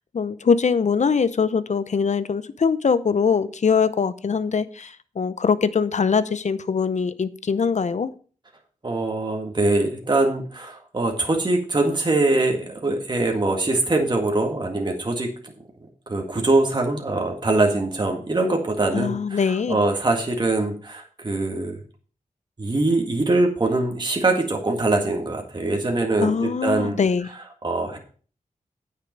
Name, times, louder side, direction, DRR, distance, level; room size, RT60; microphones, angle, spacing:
voice 1, 0.1-8.1 18.9-19.8 26.2-27.3, left 5 dB, 60° left, 0.7 m, -22 dB
voice 2, 8.8-15.3 16.1-21.8 22.6-27.0 27.6-28.0, right 2 dB, 35° right, 1.8 m, -23 dB
9.1 x 6.7 x 5.2 m
wide cardioid pair, 80°, 14 cm